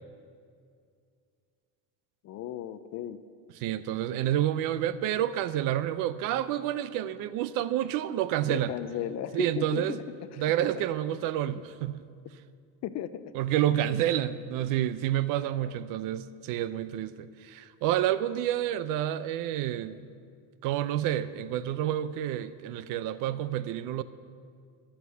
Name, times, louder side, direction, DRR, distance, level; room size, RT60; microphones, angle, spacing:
voice 1, 2.2-3.2 8.5-10.0 10.3-10.8 12.8-13.3 15.6-15.7, left 11 dB, 40° left, 13 dB, 0.5 m, -36 dB
voice 2, 3.6-8.7 9.3-10.0 10.4-12.0 13.3-20.1 20.6-24.0, right 12 dB, 50° right, 15 dB, 0.5 m, -29 dB
14.5 x 11.0 x 6.9 m, 2.3 s
cardioid pair, 150°, 44 cm